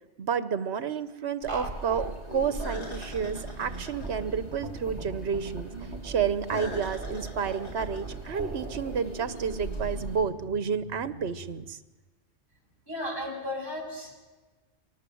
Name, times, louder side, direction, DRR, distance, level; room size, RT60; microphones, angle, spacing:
voice 1, 0.2-5.7 6.0-11.8, right 6 dB, 70° right, 13 dB, 1.3 m, -30 dB
sound 1, 1.4-10.2, right 1 dB, 75° left, 5.4 m, -40 dB
sound 2, 1.5-11.7, right 2 dB, 50° right, 2.5 m, -42 dB
sound 3, 3.9-9.0, right 3 dB, 5° right, 2.7 m, -40 dB
voice 2, 12.9-14.1, left 1 dB, 20° left, -2 dB, 7.8 m, -34 dB
24.0 x 18.5 x 7.8 m, 1.2 s
omnidirectional pair, 1.2 m